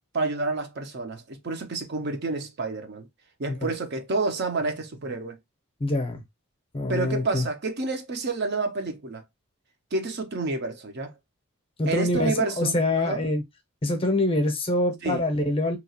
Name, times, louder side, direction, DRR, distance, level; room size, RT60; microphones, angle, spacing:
voice 1, 0.1-3.1 3.4-5.4 6.9-9.2 9.9-11.1 11.9-13.2 15.0-15.2, right 3 dB, 50° right, 0.5 m, -29 dB
voice 2, 5.8-6.2 6.7-7.4 11.8-13.4 13.8-15.8, left 1 dB, 25° left, 0.6 m, -25 dB
2.9 x 2.3 x 2.7 m
head